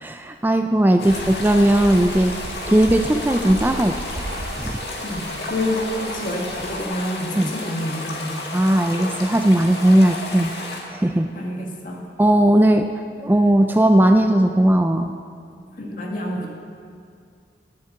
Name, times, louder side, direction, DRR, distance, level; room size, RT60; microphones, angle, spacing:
voice 1, 0.0-2.3 2.7-4.2 4.6-4.8 7.4-7.5 8.5-10.5 10.9-11.3 12.2-12.9 13.2-15.1, right 1 dB, 10° right, 6 dB, 0.4 m, -17 dB
sound 1, 1.0-10.8, left 2 dB, 65° left, 2.1 m, -32 dB
sound 2, 1.1-6.8, right 2 dB, 80° right, 0.8 m, -35 dB
voice 2, 5.0-8.4 11.3-12.1 15.8-16.5, left 1 dB, 50° left, -1 dB, 1.9 m, -28 dB
11.5 x 7.4 x 8.6 m, 2.3 s
head